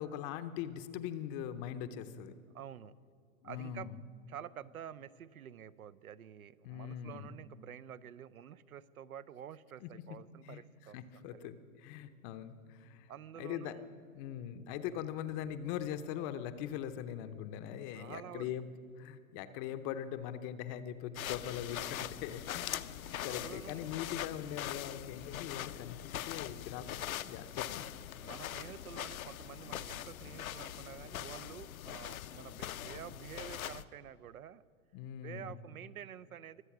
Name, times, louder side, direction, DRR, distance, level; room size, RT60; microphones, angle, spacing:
voice 1, 0.0-2.3 3.4-4.0 6.6-7.3 9.8-9.9 10.4-13.1 13.4-13.8 14.1-18.7 19.0-22.8 23.2-27.9 34.9-35.5, left 10 dB, 25° left, 11 dB, 0.6 m, -41 dB
voice 2, 2.5-2.9 3.4-3.9 4.3-11.5 13.1-13.9 17.9-18.5 23.3-23.8 28.2-34.6 35.2-36.6, right 9 dB, 85° right, 18 dB, 0.7 m, -49 dB
sound 1, 21.2-33.8, left 11 dB, 75° left, 0.7 m, -42 dB
23.5 x 8.1 x 6.0 m, 2.2 s
hypercardioid pair, 130°, 42 cm